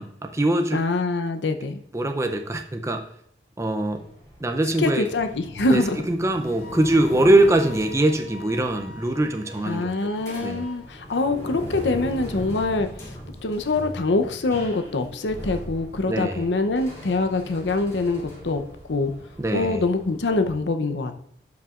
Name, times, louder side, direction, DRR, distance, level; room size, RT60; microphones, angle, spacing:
voice 1, 0.0-0.8 1.9-3.0 3.6-4.0 4.4-5.1 5.7-5.8 6.1-9.9 10.4-10.7 16.1-16.5 19.4-19.8, right 1 dB, 15° right, 5 dB, 0.5 m, -22 dB
voice 2, 0.7-1.8 4.8-6.0 9.6-13.1 13.4-18.6 18.9-19.1 19.5-21.2, left 3 dB, 90° left, 7 dB, 0.7 m, -24 dB
sound 1, 3.9-20.6, equal, 20° left, 2.6 m, -39 dB
Wind instrument woodwind instrument, 6.4-10.9, left 4 dB, 55° left, 2.4 m, -44 dB
12.0 x 5.8 x 2.5 m, 0.71 s
head